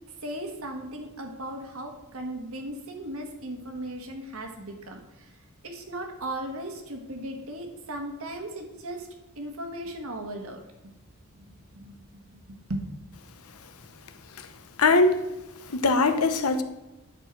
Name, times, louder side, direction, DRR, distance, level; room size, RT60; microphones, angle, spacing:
voice 1, 0.2-5.3 5.6-9.1 9.3-10.6 11.3-12.8, right 1 dB, 75° right, 3 dB, 1.6 m, -37 dB
voice 2, 14.8-15.2 15.7-16.6, left 3 dB, 80° left, 9 dB, 0.9 m, -21 dB
11.0 x 4.5 x 6.1 m, 1.0 s
head